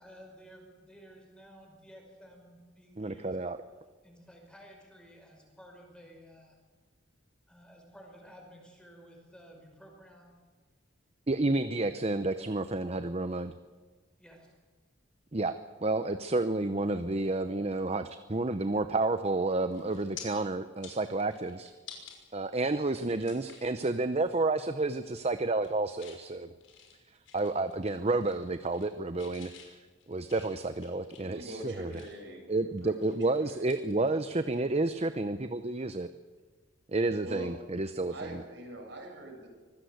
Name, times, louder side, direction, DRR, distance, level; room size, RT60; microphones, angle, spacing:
voice 1, 0.0-3.4 4.0-6.6 7.5-10.4 14.2-14.5, equal, 5° left, 1 dB, 5.2 m, -54 dB
voice 2, 3.0-3.6 11.3-13.5 15.3-15.6 15.8-21.7 22.3-26.5 27.3-29.8 30.1-32.0 32.5-36.1 36.9-38.4, right 2 dB, 35° right, 10 dB, 0.7 m, -30 dB
sound 1, 19.7-20.2 20.7-22.2 22.6-22.7 23.2-23.7 24.1-24.3 24.7-25.1 25.4-26.2 26.6-27.9 28.2-28.9 29.2-32.3 32.8-34.6 34.9-35.1 37.0-37.1, left 8 dB, 85° left, 6.0 m, -51 dB
voice 3, 31.2-33.1 33.4-33.8 37.2-37.5 38.1-39.5, right 1 dB, 65° right, 1 dB, 7.5 m, -43 dB
24.5 x 17.0 x 8.0 m, 1.4 s
head